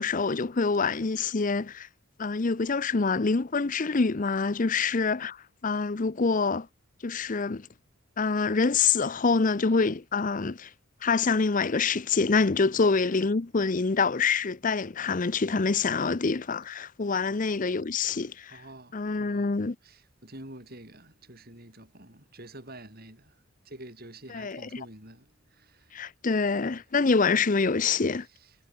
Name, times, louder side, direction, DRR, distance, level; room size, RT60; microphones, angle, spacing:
voice 1, 0.0-1.9 2.2-5.4 5.6-6.7 7.0-7.7 8.2-10.7 11.0-18.6 18.9-19.8 24.3-24.6 25.9-28.3, left 4 dB, 35° left, 0.6 m, -26 dB
voice 2, 18.5-19.5 19.8-26.1 28.2-28.6, right 1 dB, 45° right, 7.1 m, -48 dB
head